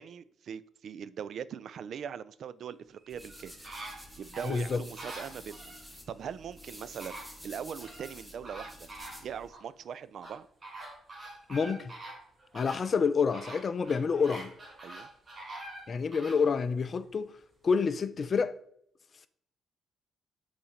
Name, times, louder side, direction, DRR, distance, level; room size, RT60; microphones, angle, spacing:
voice 1, 0.0-3.6 4.2-5.7 6.1-8.7 9.2-10.5 14.8-15.1, right 8 dB, 60° right, 0.3 m, -41 dB
sound 1, 3.0-5.8 6.6-6.7 7.0-8.1 8.4-9.7 10.2-16.5 16.9-17.0, right 2 dB, 35° right, 1.8 m, -46 dB
sound 2, 3.1-9.5, equal, 5° right, 1.2 m, -50 dB
voice 2, 4.5-4.8 11.5-11.9 12.5-14.5 15.9-17.3 17.6-18.5, left 5 dB, 45° left, 0.5 m, -28 dB
5.7 x 4.2 x 5.0 m
cardioid pair, 90°, 0 cm